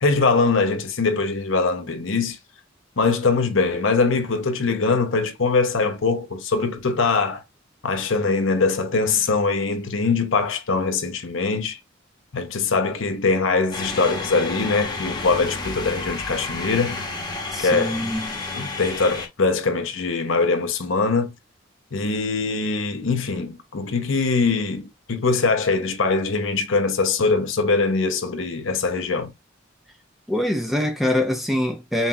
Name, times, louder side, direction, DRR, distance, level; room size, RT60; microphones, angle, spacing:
voice 1, 0.0-2.4 3.0-7.4 7.8-11.8 12.3-17.0 17.6-18.0 18.5-21.3 21.9-29.3, left 4 dB, 70° left, 0.8 m, -22 dB
sound 1, 13.7-19.3, left 3 dB, 20° left, 1.0 m, -31 dB
voice 2, 17.5-18.3 30.3-32.1, left 1 dB, ahead, 0.6 m, -24 dB
5.6 x 2.3 x 2.7 m
head